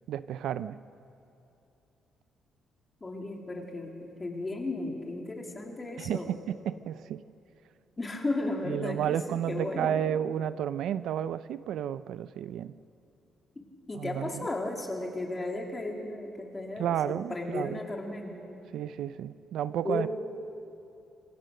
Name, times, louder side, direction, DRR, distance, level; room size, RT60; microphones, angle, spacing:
voice 1, 0.1-0.8 6.0-7.2 8.7-12.7 13.9-14.5 16.8-17.8 18.7-20.1, right 10 dB, 80° right, 15 dB, 0.5 m, -32 dB
voice 2, 3.0-6.3 8.0-9.2 9.5-10.0 13.9-18.5 19.8-20.1, left 2 dB, 25° left, 1 dB, 3.2 m, -35 dB
26.0 x 18.5 x 6.6 m, 2.8 s
cardioid pair, 95°, 0 cm